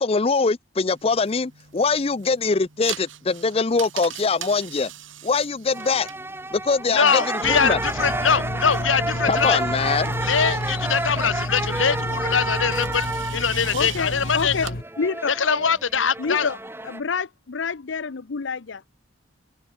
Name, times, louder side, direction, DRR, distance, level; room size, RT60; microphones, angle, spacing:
voice 1, 0.0-4.9 5.2-6.1 6.5-7.2 7.5-7.8 9.3-10.1, left 4 dB, 30° left, 0.5 m, -22 dB
sound 1, 0.9-14.7, right 10 dB, 85° right, 2.8 m, -42 dB
sound 2, 5.7-17.0, right 2 dB, 10° right, 3.4 m, -30 dB
voice 2, 6.9-9.6 10.2-14.7 15.3-16.5, left 6 dB, 90° left, 1.4 m, -23 dB
sound 3, 7.4-14.8, left 1 dB, 50° left, 2.2 m, -31 dB
voice 3, 13.7-14.7 15.0-15.3 16.2-16.6 16.8-18.9, left 5 dB, 75° left, 0.7 m, -27 dB
open air
head